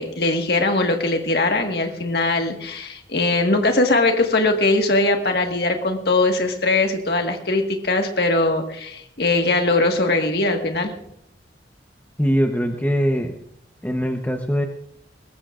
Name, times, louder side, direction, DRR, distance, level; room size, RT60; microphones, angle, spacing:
voice 1, 0.0-10.9, left 2 dB, 60° left, 3 dB, 1.7 m, -21 dB
voice 2, 12.2-13.4 13.8-14.6, equal, 10° left, 3 dB, 0.9 m, -21 dB
21.5 x 20.0 x 2.5 m, 0.72 s
head